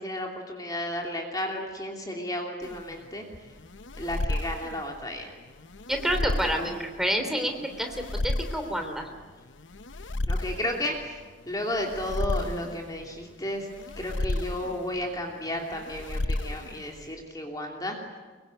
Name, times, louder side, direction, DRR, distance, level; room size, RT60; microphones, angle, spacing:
voice 1, 0.0-3.2 3.9-5.3 10.3-11.2 11.5-13.7 14.0-18.0, left 1 dB, 20° left, 1 dB, 2.9 m, -33 dB
sound 1, 2.6-17.1, left 1 dB, 75° left, 1.0 m, -34 dB
voice 2, 5.9-9.1, equal, ahead, 4 dB, 3.2 m, -29 dB
25.0 x 23.5 x 9.2 m, 1.4 s
head